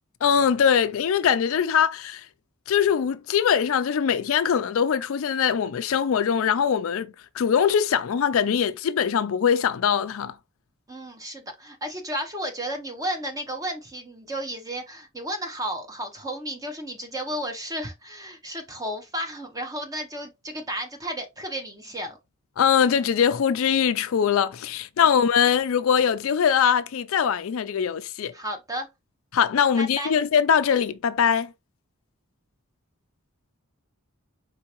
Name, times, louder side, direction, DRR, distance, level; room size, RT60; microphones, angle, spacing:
voice 1, 0.2-2.3 2.7-10.3 22.6-28.3 29.3-31.5, left 7 dB, 65° left, 0.4 m, -22 dB
voice 2, 10.9-22.2 25.0-25.2 28.3-28.9 29.6-30.1, equal, 15° right, 0.8 m, -33 dB
4.6 x 3.3 x 2.9 m
head